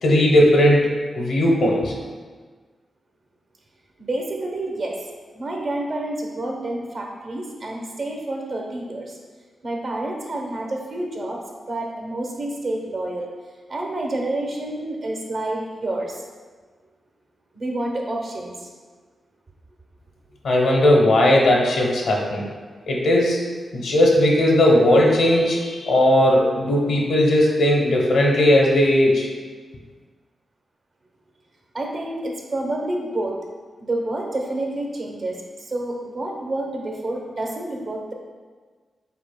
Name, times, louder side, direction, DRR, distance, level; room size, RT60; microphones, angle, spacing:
voice 1, 0.0-1.9 20.4-22.4 22.9-23.4 23.7-29.3, left 1 dB, 85° left, -2 dB, 0.9 m, -17 dB
voice 2, 4.0-5.1 5.3-9.2 9.6-11.4 11.7-13.3 13.7-16.2 17.5-18.7 31.7-33.4 33.8-38.1, right 1 dB, 65° right, 0 dB, 0.9 m, -28 dB
5.8 x 4.0 x 2.2 m, 1.5 s
supercardioid pair, 45°, 0 cm